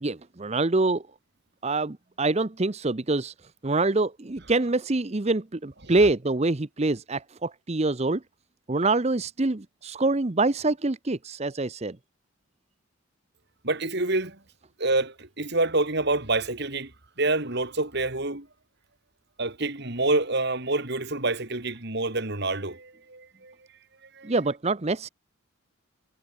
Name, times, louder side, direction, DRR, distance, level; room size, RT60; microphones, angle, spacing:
voice 1, 0.0-1.0 1.6-3.3 3.6-8.2 8.7-12.0 24.2-25.1, right 2 dB, 30° right, 0.7 m, -25 dB
voice 2, 13.6-14.4 14.8-16.9 17.2-18.5 19.4-23.5 24.1-24.3, right 2 dB, 50° right, 2.9 m, -27 dB
head